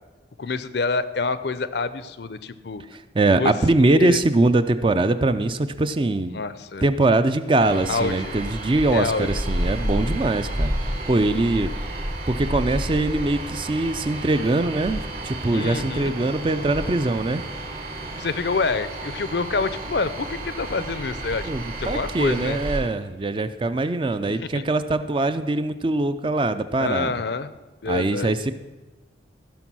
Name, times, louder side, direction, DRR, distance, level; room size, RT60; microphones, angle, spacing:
voice 1, 0.4-2.8 3.3-3.5 3.9-4.2 6.3-6.8 7.9-8.3 8.9-9.4 15.5-16.1 18.1-21.5 21.8-22.6 24.3-24.6 26.8-27.5 27.8-28.3, left 4 dB, 60° left, 14 dB, 0.5 m, -27 dB
voice 2, 2.9-6.4 6.8-11.7 12.3-17.4 21.4-27.2 27.9-28.5, right 2 dB, 25° right, 11 dB, 0.4 m, -22 dB
sound 1, 7.6-22.8, right 1 dB, 55° right, 3.1 m, -31 dB
15.0 x 6.1 x 6.1 m, 1.2 s
head